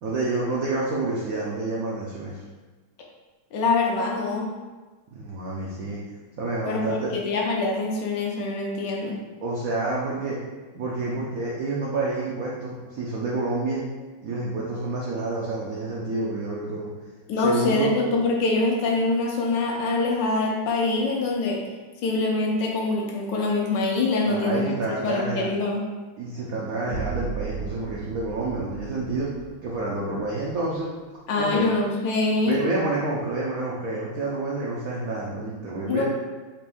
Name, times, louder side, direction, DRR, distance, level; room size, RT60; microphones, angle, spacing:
voice 1, 0.0-2.4 5.1-6.0 6.4-7.1 9.4-10.4 10.7-13.8 14.2-16.9 17.3-17.9 24.2-25.5 26.2-29.3 29.6-30.9 31.4-31.7 32.4-36.0, right 2 dB, 75° right, -4 dB, 0.7 m, -28 dB
voice 2, 3.5-4.5 6.7-9.2 17.3-21.6 22.0-25.8 31.3-32.6 35.9-36.0, left 3 dB, 70° left, -1 dB, 1.2 m, -24 dB
sound 1, 26.9-30.9, right 5 dB, 50° left, 0.6 m, -36 dB
4.4 x 2.5 x 3.4 m, 1.3 s
omnidirectional pair, 2.2 m